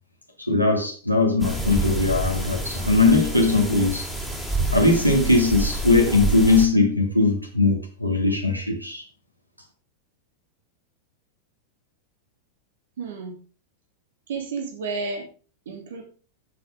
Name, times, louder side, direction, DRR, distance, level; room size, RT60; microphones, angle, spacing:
voice 1, 0.4-4.1 4.7-9.0, left 3 dB, 90° right, 2.5 m, -20 dB
sound 1, 1.4-6.7, right 2 dB, ahead, 4.6 m, -28 dB
voice 2, 13.0-13.3 14.3-15.3 15.6-16.0, right 4 dB, 60° right, 3.0 m, -31 dB
14.0 x 7.7 x 3.6 m
figure-of-eight pair, 90°, 0 cm